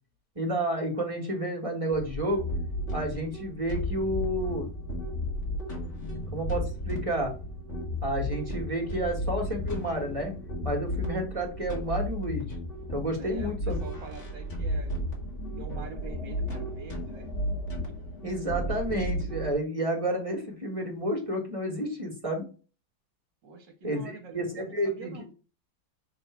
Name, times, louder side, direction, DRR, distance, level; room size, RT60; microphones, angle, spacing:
voice 1, 0.3-2.5 2.9-4.7 6.3-7.3 8.0-10.3 10.6-12.5 12.9-13.8 18.2-22.4 23.8-25.3, right 1 dB, 15° right, 1 dB, 1.5 m, -30 dB
sound 1, 1.9-19.5, equal, 35° left, 2.2 m, -34 dB
voice 2, 13.1-14.9 15.6-17.4 17.7-18.0 23.4-25.3, right 5 dB, 65° right, 1 dB, 1.7 m, -45 dB
7.1 x 3.2 x 4.5 m, 0.36 s
omnidirectional pair, 2.3 m